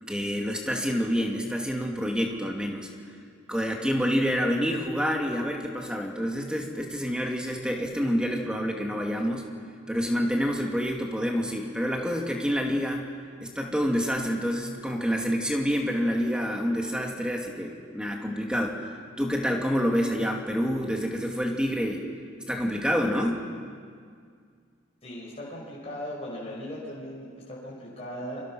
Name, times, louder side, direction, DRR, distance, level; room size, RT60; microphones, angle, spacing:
voice 1, 0.0-2.9 3.5-9.5 9.9-13.0 13.4-22.0 22.5-23.4, equal, 5° right, 1 dB, 2.5 m, -27 dB
voice 2, 25.0-28.4, equal, 30° left, -5 dB, 5.6 m, -38 dB
29.5 x 25.0 x 6.3 m, 2.1 s
head